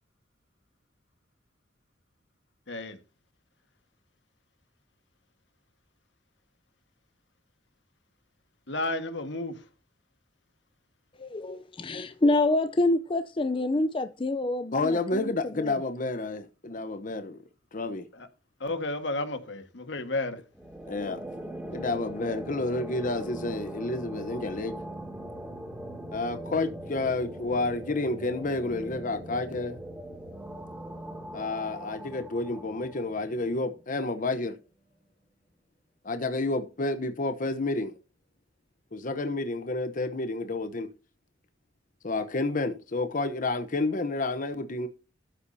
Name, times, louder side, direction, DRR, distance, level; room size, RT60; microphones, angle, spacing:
voice 1, 2.7-3.0 8.7-9.5 18.2-18.3 18.6-20.4, left 2 dB, 70° left, 1.6 m, -32 dB
voice 2, 11.2-15.3 15.6-15.7, left 2 dB, 30° left, 0.5 m, -27 dB
voice 3, 14.7-17.4 17.7-18.1 20.9-21.2 21.7-24.7 26.1-29.8 31.3-34.6 36.0-37.9 38.9-40.9 42.0-44.9, left 2 dB, 45° left, 0.9 m, -30 dB
sound 1, 20.5-33.7, right 1 dB, 5° right, 2.5 m, -40 dB
13.0 x 8.4 x 2.7 m
head